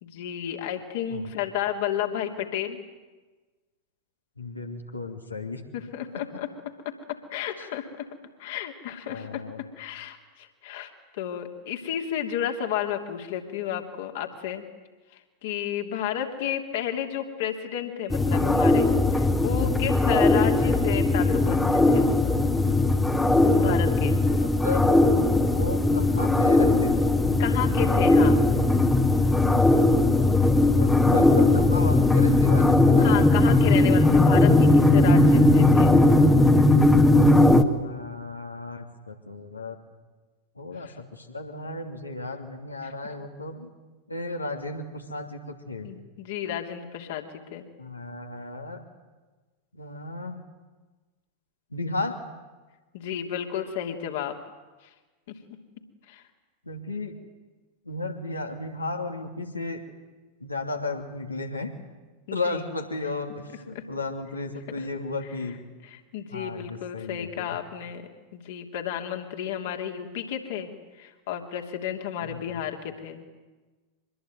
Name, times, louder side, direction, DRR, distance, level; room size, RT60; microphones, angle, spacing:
voice 1, 0.0-2.8 5.7-6.5 6.8-8.1 8.4-9.4 9.8-14.6 15.4-22.1 23.5-24.2 27.4-28.4 33.0-35.9 40.8-40.9 42.8-42.9 45.8-47.3 47.5-47.7 52.9-54.4 56.1-56.2 62.3-62.6 63.7-63.8 65.9-70.7 71.0-73.2, left 10 dB, 55° left, 3 dB, 3.0 m, -32 dB
voice 2, 4.4-5.6 9.1-9.7 24.2-25.0 25.3-27.2 30.7-33.2 37.7-39.8 40.6-43.7 44.1-45.9 47.8-48.8 49.7-50.4 51.7-52.2 56.6-57.1 57.8-59.8 60.4-61.7 62.3-65.6 66.3-67.6 72.2-72.6, left 2 dB, 80° left, 3 dB, 2.9 m, -34 dB
sound 1, 18.1-37.6, left 2 dB, 5° left, 1.6 m, -19 dB
25.0 x 21.0 x 9.3 m, 1.3 s
figure-of-eight pair, 90°, 0 cm